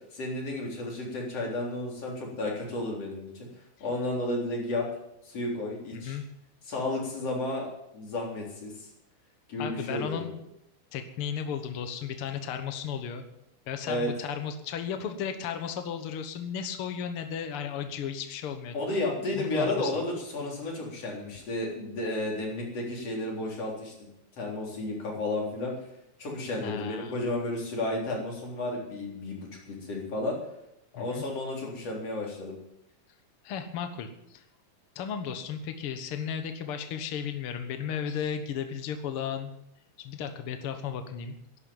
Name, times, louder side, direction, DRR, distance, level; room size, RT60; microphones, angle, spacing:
voice 1, 0.1-3.3 3.8-4.9 5.2-6.2 6.6-7.7 7.9-8.9 9.5-10.3 13.9-14.1 18.7-24.1 24.4-25.7 26.2-30.4 30.9-32.5, left 2 dB, 40° left, -2 dB, 4.6 m, -32 dB
voice 2, 5.9-6.2 9.6-10.4 10.9-13.2 13.7-18.7 19.4-19.9 26.6-27.2 30.9-31.2 33.4-34.4 34.9-39.5 40.0-41.3, left 7 dB, 80° left, 8 dB, 1.2 m, -34 dB
11.5 x 11.0 x 9.1 m, 0.82 s
omnidirectional pair, 4.4 m